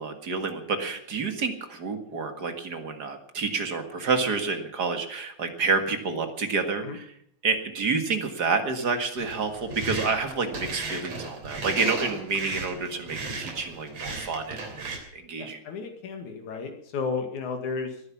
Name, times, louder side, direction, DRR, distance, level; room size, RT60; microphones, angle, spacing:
voice 1, 0.0-7.1 7.4-14.8 15.1-15.6, right 4 dB, 40° right, 6 dB, 1.9 m, -29 dB
sound 1, 9.2-15.0, right 3 dB, 60° right, 4.5 m, -35 dB
voice 2, 15.4-18.0, left 5 dB, 90° left, 5 dB, 3.4 m, -33 dB
19.0 x 10.0 x 7.2 m, 0.69 s
omnidirectional pair, 3.3 m